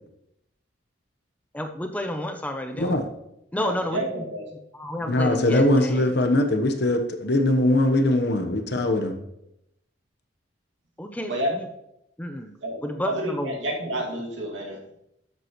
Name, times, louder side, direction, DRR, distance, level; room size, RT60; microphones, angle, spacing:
voice 1, 1.5-3.0 3.5-4.3 4.7-6.1 11.0-11.7 12.2-12.5 12.8-13.6, left 1 dB, 10° left, 5 dB, 0.6 m, -31 dB
voice 2, 3.5-4.5 11.2-11.6 12.6-14.8, right 1 dB, 75° right, -1 dB, 2.4 m, -30 dB
voice 3, 5.1-9.2, left 1 dB, 60° left, 6 dB, 1.1 m, -21 dB
12.5 x 8.0 x 3.1 m, 0.81 s
head